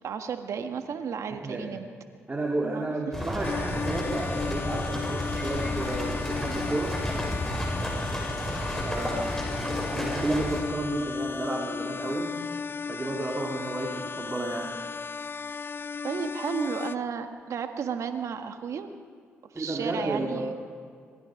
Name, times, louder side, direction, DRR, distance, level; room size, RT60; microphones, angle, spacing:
voice 1, 0.0-1.9 2.6-2.9 16.0-18.9 19.5-20.5, right 6 dB, 65° right, 7 dB, 1.6 m, -33 dB
voice 2, 1.4-1.7 2.3-7.0 8.7-12.4 12.9-14.8 19.6-20.5, right 2 dB, 25° right, -1 dB, 3.6 m, -32 dB
sound 1, 3.1-10.6, left 1 dB, 5° left, 7.6 m, -32 dB
sound 2, 3.4-16.9, left 5 dB, 40° left, 0.6 m, -35 dB
25.0 x 20.0 x 5.3 m, 2.1 s
hypercardioid pair, 45°, 6 cm